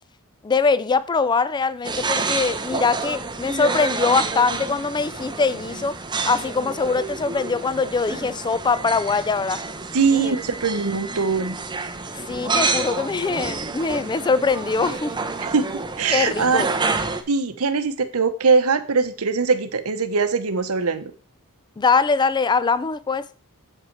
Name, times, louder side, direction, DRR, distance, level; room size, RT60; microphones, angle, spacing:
voice 1, 0.4-6.0 6.3-9.6 10.1-10.4 12.1-15.1 16.1-16.7 21.8-23.3, left 4 dB, 20° left, 0.3 m, -22 dB
sound 1, 1.8-17.2, right 3 dB, 20° right, 0.8 m, -29 dB
voice 2, 9.9-11.6 15.4-15.7 16.0-16.6 17.3-21.1, right 5 dB, 70° right, 0.8 m, -21 dB
7.6 x 5.5 x 4.5 m
head